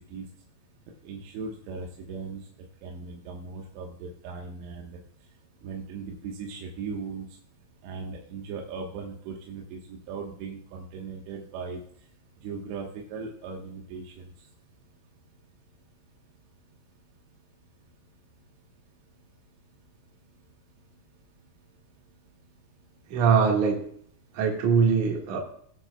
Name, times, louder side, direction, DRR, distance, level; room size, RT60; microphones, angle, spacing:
voice 1, 1.0-2.4 2.8-5.0 5.6-7.3 7.8-11.8 12.4-14.3, right 5 dB, 90° right, 0 dB, 3.6 m, -38 dB
voice 2, 23.1-23.9 24.3-25.4, right 6 dB, 55° right, 0 dB, 2.8 m, -22 dB
20.5 x 7.5 x 2.3 m, 0.63 s
omnidirectional pair, 4.9 m